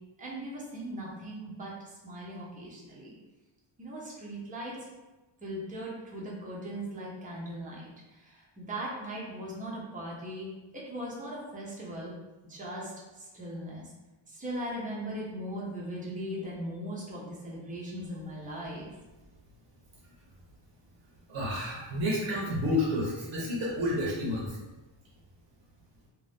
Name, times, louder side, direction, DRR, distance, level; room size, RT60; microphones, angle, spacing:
voice 1, 0.2-3.2 3.8-4.8 5.4-12.1 12.4-13.9 14.3-18.9, equal, 15° right, -4 dB, 0.7 m, -39 dB
voice 2, 21.3-24.6, left 1 dB, 75° right, -5 dB, 0.9 m, -30 dB
2.6 x 2.3 x 3.4 m, 1.1 s
wide cardioid pair, 145°, 48 cm